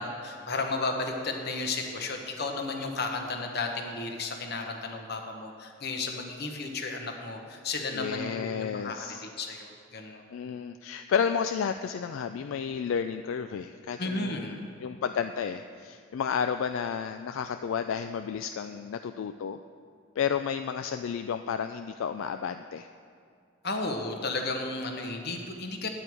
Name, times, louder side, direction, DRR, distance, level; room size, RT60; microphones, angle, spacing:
voice 1, 0.0-10.2 14.0-14.6 23.6-25.9, left 3 dB, 50° left, 3 dB, 1.1 m, -33 dB
voice 2, 7.9-9.3 10.3-19.6 20.2-22.9, left 7 dB, 75° left, 8 dB, 0.3 m, -32 dB
10.0 x 8.9 x 4.6 m, 2.3 s
head